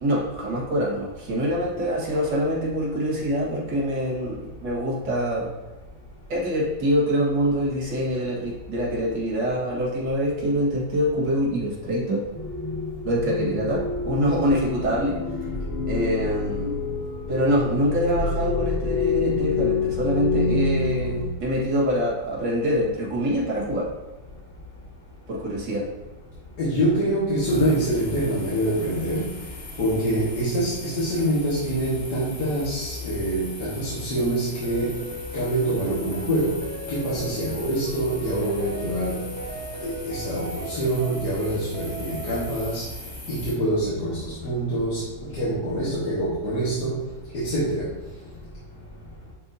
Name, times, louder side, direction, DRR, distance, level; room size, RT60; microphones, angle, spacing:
voice 1, 0.0-5.5 6.3-12.2 13.0-15.2 15.9-16.8 17.3-23.9 25.3-25.9, equal, 85° right, -4 dB, 2.4 m, -25 dB
sound 1, 12.3-21.3, left 4 dB, 20° left, 0.5 m, -27 dB
voice 2, 26.6-29.3 29.8-34.9 35.3-36.6 36.9-39.3 39.8-42.8 43.3-45.1 45.3-47.0 47.3-47.9, right 1 dB, 70° left, -9 dB, 2.2 m, -25 dB
sound 2, 27.4-43.5, left 3 dB, 40° left, 1.7 m, -39 dB
sound 3, 34.6-42.6, right 1 dB, 40° right, 1.2 m, -38 dB
10.5 x 4.2 x 2.7 m, 1.2 s
omnidirectional pair, 1.9 m